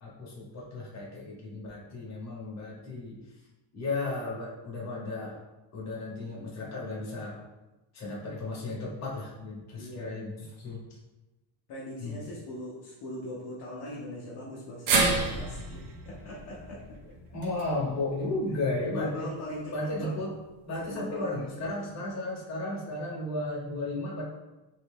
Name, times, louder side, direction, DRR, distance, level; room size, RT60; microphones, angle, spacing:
voice 1, 0.0-3.2 3.7-5.4 5.7-7.4 7.9-10.3 10.6-10.8 12.0-12.2 17.3-19.3 19.7-20.4 20.7-24.3, left 2 dB, 35° left, -4 dB, 1.1 m, -34 dB
voice 2, 9.7-10.1 11.7-17.2 18.9-20.2 20.8-21.5, left 1 dB, 55° left, -6 dB, 0.8 m, -40 dB
sound 1, 14.9-19.1 19.5-19.6 20.7-20.8, right 3 dB, 90° right, 0.8 m, -31 dB
3.2 x 2.6 x 3.4 m, 1.1 s
cardioid pair, 145°, 46 cm